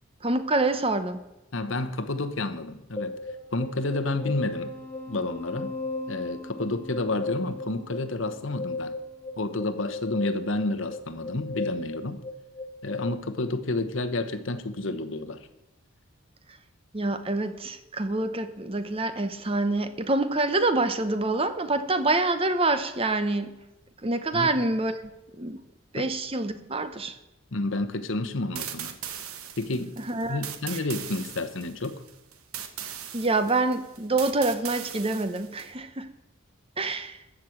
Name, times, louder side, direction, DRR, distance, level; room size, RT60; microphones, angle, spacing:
voice 1, 0.2-1.2 16.9-23.5 24.0-25.0 25.4-25.6 25.9-27.2 30.0-30.4 33.1-36.1 36.8-37.2, right 2 dB, 25° right, 10 dB, 0.8 m, -26 dB
voice 2, 1.5-3.1 3.5-4.7 5.1-5.7 6.1-9.0 9.4-12.2 12.8-15.5 24.3-24.5 26.0-26.1 27.5-29.0 29.6-30.0 30.3-32.0, left 2 dB, 60° left, 9 dB, 1.0 m, -30 dB
sound 1, 3.0-13.1, left 2 dB, 10° left, 1.4 m, -36 dB
sound 2, 28.5-35.7, right 9 dB, 80° right, 1.2 m, -39 dB
14.5 x 6.2 x 8.6 m, 0.96 s
head